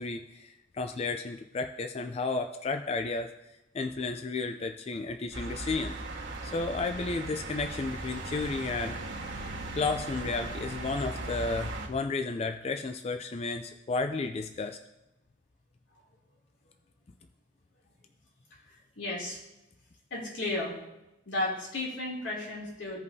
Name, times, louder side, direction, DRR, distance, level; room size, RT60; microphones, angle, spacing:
voice 1, 0.0-3.3 3.7-6.0 6.4-9.0 9.7-14.8, left 3 dB, 35° left, 6 dB, 0.3 m, -32 dB
sound 1, 5.3-11.9, right 2 dB, 85° right, 1.5 m, -38 dB
voice 2, 19.0-19.4 20.1-20.8 21.3-23.0, left 2 dB, 90° left, -4 dB, 2.7 m, -33 dB
16.0 x 5.3 x 2.7 m, 0.94 s
head